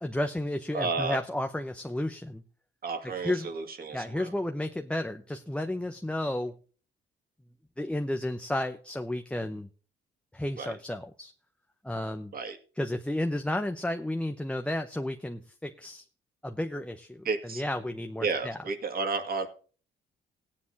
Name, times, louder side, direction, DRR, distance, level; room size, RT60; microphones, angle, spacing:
voice 1, 0.0-2.4 3.2-3.5 3.9-6.6 7.8-9.7 10.3-11.3 11.8-12.3 12.8-16.0 16.4-18.6, left 1 dB, 5° left, 5 dB, 0.8 m, -32 dB
voice 2, 0.7-1.2 2.8-4.3 10.6-10.7 12.3-12.6 17.2-17.6 18.2-19.5, right 4 dB, 50° right, 6 dB, 2.2 m, -32 dB
16.5 x 9.7 x 2.8 m, 0.39 s
cardioid pair, 90°, 20 cm